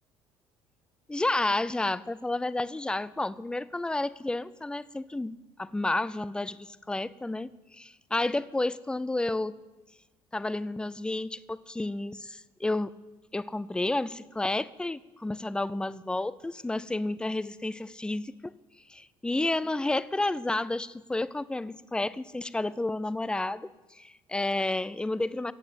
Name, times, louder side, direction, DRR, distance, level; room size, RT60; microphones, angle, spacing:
voice 1, 1.1-9.6 10.3-12.9 13.3-18.5 18.9-25.5, left 2 dB, 10° left, 17 dB, 0.5 m, -31 dB
16.5 x 7.8 x 8.6 m, 1.2 s
cardioid pair, 95°, 10 cm